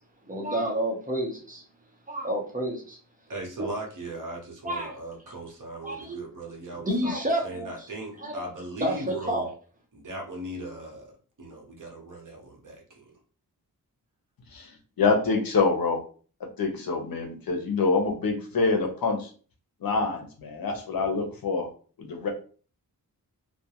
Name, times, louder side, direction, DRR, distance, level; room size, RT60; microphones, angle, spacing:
voice 1, 0.3-1.6 2.1-3.0 4.6-4.9 5.8-6.2 6.9-7.7 8.2-8.5 8.8-9.5, right 1 dB, 20° right, -1 dB, 0.7 m, -29 dB
voice 2, 3.3-9.5 9.9-13.2, right 1 dB, 55° right, 0 dB, 0.8 m, -38 dB
voice 3, 15.0-16.0 16.6-19.3 19.8-21.7 22.0-22.3, left 4 dB, 70° left, 3 dB, 0.7 m, -26 dB
2.4 x 2.1 x 2.8 m, 0.40 s
wide cardioid pair, 115°, 37 cm